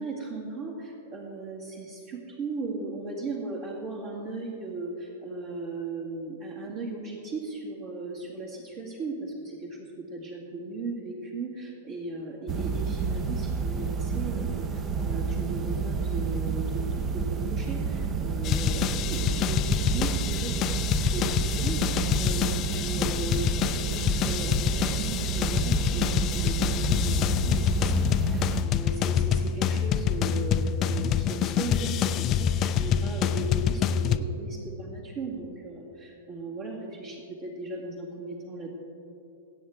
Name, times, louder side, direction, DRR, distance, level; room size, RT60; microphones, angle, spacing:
voice 1, 0.0-16.9 17.1-38.7, right 3 dB, 45° right, -3 dB, 2.0 m, -37 dB
sound 1, 12.5-28.6, right 5 dB, 25° right, 0.8 m, -29 dB
sound 2, 18.4-34.2, left 9 dB, 30° left, 0.4 m, -26 dB
22.0 x 8.8 x 3.6 m, 2.8 s
figure-of-eight pair, 100°, 0 cm